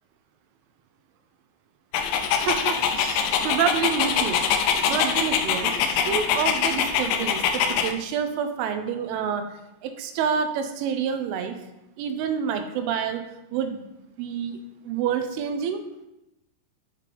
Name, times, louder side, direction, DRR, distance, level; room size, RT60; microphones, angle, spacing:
Dog, 1.9-7.9, left 7 dB, 80° left, 2.7 m, -24 dB
voice 1, 2.4-4.4 4.9-5.7 6.1-9.4 9.8-11.6 12.0-13.2 13.5-13.8 14.2-14.6 14.8-15.8, right 7 dB, 85° right, 7 dB, 3.1 m, -28 dB
10.0 x 5.0 x 3.3 m, 0.92 s
omnidirectional pair, 5.6 m